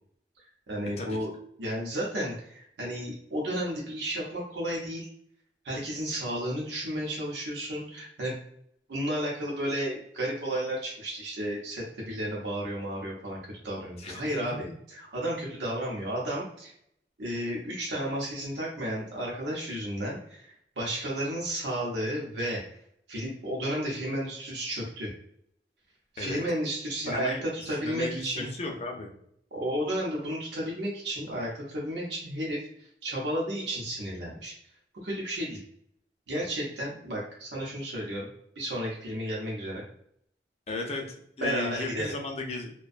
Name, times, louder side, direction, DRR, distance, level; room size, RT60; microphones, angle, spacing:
voice 1, 0.7-1.3 1.6-5.1 5.6-8.4 8.9-13.4 13.6-16.7 17.2-22.6 23.1-25.1 26.1-28.5 29.5-34.5 35.0-35.6 36.3-38.3 38.6-39.8 41.4-42.1, right 1 dB, 85° right, -3 dB, 0.6 m, -32 dB
voice 2, 14.0-14.7 26.2-26.4 27.1-27.4 27.8-29.1 40.7-41.1 41.4-42.7, left 2 dB, 35° left, 2 dB, 0.4 m, -35 dB
2.5 x 2.2 x 2.4 m, 0.69 s
head